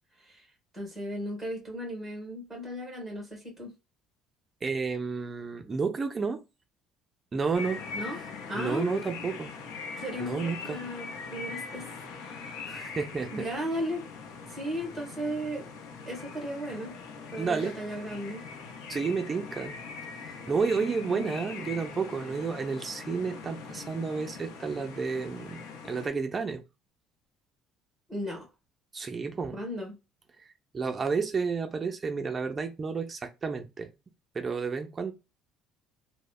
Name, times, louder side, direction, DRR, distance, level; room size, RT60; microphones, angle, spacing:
voice 1, 0.7-3.7 7.9-8.2 8.5-9.1 10.0-11.8 12.2-12.8 13.3-14.0 14.5-15.6 16.0-17.0 17.3-18.4 28.1-28.5 29.5-29.9, equal, ahead, 1.4 m, -36 dB
voice 2, 4.6-6.4 7.3-7.8 8.5-9.5 10.2-10.8 12.7-13.3 17.4-17.7 18.9-19.8 20.5-26.6 28.9-29.6 30.7-33.9 34.3-35.1, right 5 dB, 25° right, 0.5 m, -31 dB
sound 1, 7.5-26.1, left 5 dB, 85° left, 0.6 m, -42 dB
3.1 x 2.1 x 2.3 m
cardioid pair, 145°, 0 cm